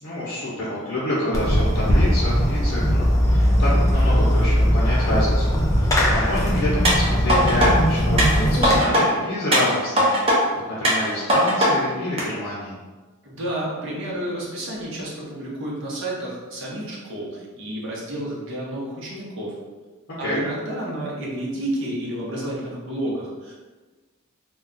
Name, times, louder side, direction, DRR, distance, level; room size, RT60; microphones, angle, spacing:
voice 1, 0.0-12.8 20.2-20.4, left 1 dB, 60° left, -8 dB, 0.8 m, -28 dB
Fireworks, 1.3-8.8, equal, 15° left, 0.4 m, -19 dB
sound 1, 6.8-7.7 8.2-9.0 9.5-10.4 10.8-11.7 12.2-12.3, equal, 25° right, 0.6 m, -19 dB
voice 2, 13.2-19.5 20.2-23.5, right 1 dB, 55° right, -5 dB, 0.8 m, -30 dB
2.3 x 2.2 x 3.8 m, 1.3 s
head